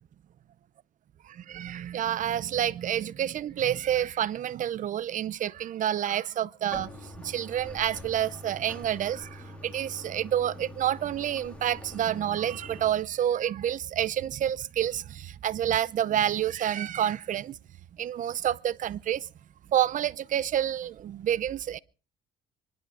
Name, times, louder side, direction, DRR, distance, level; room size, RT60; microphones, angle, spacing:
voice 1, 1.3-6.9 7.2-17.6 18.0-19.3 19.7-21.8, right 11 dB, 50° right, 0.7 m, -28 dB
Bathtub (filling or washing), 6.7-12.9, equal, 5° left, 3.3 m, -44 dB
24.5 x 11.0 x 5.0 m
cardioid pair, 110°, 17 cm